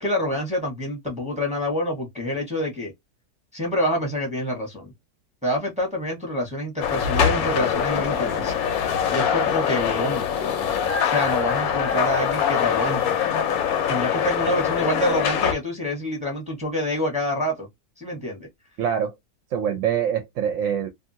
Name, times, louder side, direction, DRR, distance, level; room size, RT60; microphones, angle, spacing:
voice 1, 0.0-2.9 3.5-4.9 5.4-8.5 9.1-10.3 11.0-13.2 13.9-17.7 18.0-18.5, left 1 dB, 5° right, 1.0 m, -27 dB
sound 1, 6.8-15.5, left 8 dB, 75° left, 1.1 m, -23 dB
voice 2, 18.8-19.1 19.5-20.9, right 8 dB, 65° right, 0.9 m, -24 dB
2.7 x 2.5 x 2.7 m
omnidirectional pair, 1.6 m